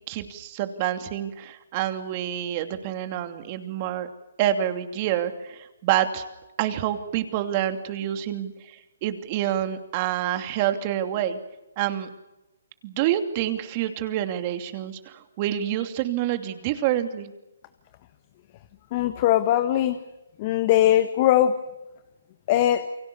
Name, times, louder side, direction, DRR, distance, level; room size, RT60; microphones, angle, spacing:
voice 1, 0.1-4.1 4.4-6.2 6.6-11.4 11.8-12.1 12.8-17.3, right 11 dB, 35° right, 8 dB, 2.8 m, -27 dB
voice 2, 18.9-20.0 20.4-21.5 22.5-22.9, left 12 dB, 35° left, 10 dB, 1.5 m, -20 dB
29.5 x 24.0 x 7.0 m, 0.98 s
hypercardioid pair, 145°, 0 cm